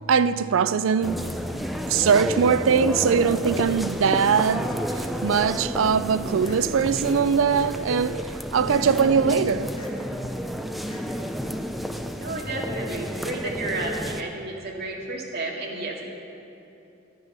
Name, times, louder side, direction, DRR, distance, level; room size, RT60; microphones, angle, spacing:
voice 1, 0.0-1.3 1.9-8.2 8.5-9.7, right 6 dB, 80° right, 0.4 m, -21 dB
sound 1, 1.0-14.2, equal, ahead, 0.5 m, -31 dB
sound 2, 4.2-4.4 5.3-5.5 6.4-6.6 7.5-7.7 8.6-8.8 9.8-9.9 10.9-11.0, left 2 dB, 25° left, 2.0 m, -46 dB
voice 2, 12.1-16.1, right 2 dB, 55° right, 2.2 m, -32 dB
12.5 x 10.5 x 6.7 m
head